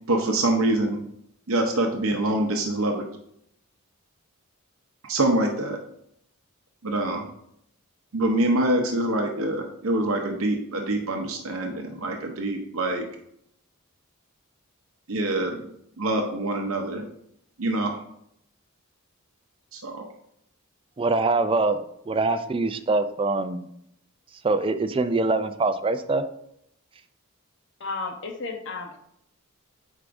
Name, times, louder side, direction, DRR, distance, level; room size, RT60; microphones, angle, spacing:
voice 1, 0.1-1.0 1.5-3.1 5.0-5.8 6.8-7.3 8.1-13.1 15.1-15.7 16.0-17.0 17.6-18.0 19.7-20.0, right 1 dB, 70° right, 3 dB, 0.7 m, -25 dB
voice 2, 21.0-23.6 24.4-26.2, right 3 dB, 25° right, 10 dB, 0.3 m, -24 dB
voice 3, 27.8-29.0, left 3 dB, 55° left, 5 dB, 0.8 m, -33 dB
8.1 x 4.8 x 2.5 m, 0.73 s
head